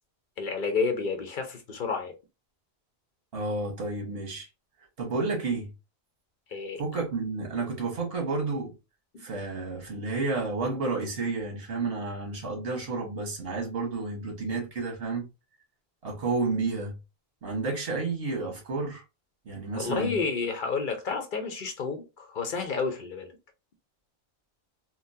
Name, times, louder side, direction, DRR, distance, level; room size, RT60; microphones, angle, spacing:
voice 1, 0.4-2.1 6.5-6.8 9.1-9.2 19.7-23.3, left 4 dB, 55° left, 0.8 m, -30 dB
voice 2, 3.3-4.5 5.0-5.7 6.8-8.7 9.2-15.3 16.0-16.9 17.4-19.0 19.4-20.1, right 3 dB, 65° right, 1.5 m, -31 dB
3.8 x 2.0 x 2.7 m
omnidirectional pair, 1.1 m